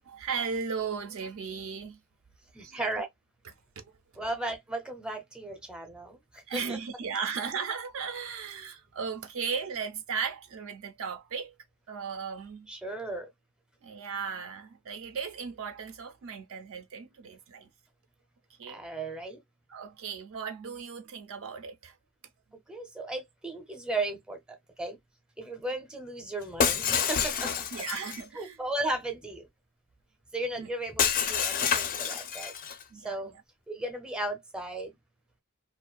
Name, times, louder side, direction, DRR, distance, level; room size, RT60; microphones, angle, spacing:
voice 1, 0.1-2.0 2.6-2.9 3.8-3.9 6.5-11.5 11.9-12.7 13.8-17.7 18.6-18.8 19.7-21.9 27.7-28.6 30.6-30.7 32.9-33.2, right 6 dB, 65° right, 0.4 m, -36 dB
voice 2, 2.5-3.1 4.2-6.2 6.5-6.8 12.7-13.3 18.7-19.4 22.7-24.4 24.8-25.0 25.4-27.7 28.3-29.4 30.3-32.5 33.0-33.3 33.7-34.9, right 2 dB, 5° right, 0.6 m, -35 dB
Shatter, 26.6-28.2 31.0-32.8, left 7 dB, 40° left, 0.4 m, -28 dB
2.5 x 2.2 x 2.2 m
head